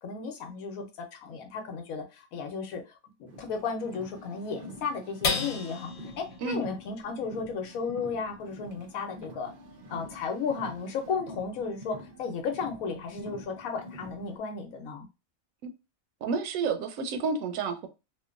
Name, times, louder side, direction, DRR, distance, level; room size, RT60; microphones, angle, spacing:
voice 1, 0.0-2.8 3.2-9.5 9.9-15.1, left 5 dB, 90° left, 1.2 m, -34 dB
Car, 3.3-14.4, equal, 55° right, 0.5 m, -47 dB
sound 1, 5.2-11.9 12.4-12.5 12.9-13.4, left 4 dB, 60° left, 1.0 m, -38 dB
voice 2, 16.2-17.9, right 4 dB, 75° right, 1.0 m, -30 dB
2.9 x 2.2 x 2.4 m
omnidirectional pair, 1.4 m